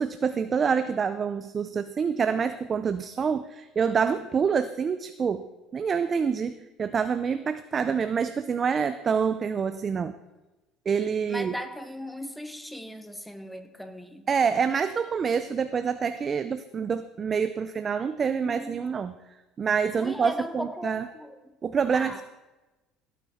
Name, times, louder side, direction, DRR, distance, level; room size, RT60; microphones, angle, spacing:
voice 1, 0.0-5.5 5.7-10.2 10.9-11.6 14.3-19.2 19.6-21.1 21.6-22.2, right 6 dB, 30° right, 11 dB, 0.5 m, -27 dB
voice 2, 11.3-14.3 18.4-18.8 20.0-21.4 21.9-22.2, equal, ahead, 8 dB, 1.1 m, -37 dB
16.5 x 9.2 x 4.2 m, 1.1 s
cardioid pair, 120°, 0 cm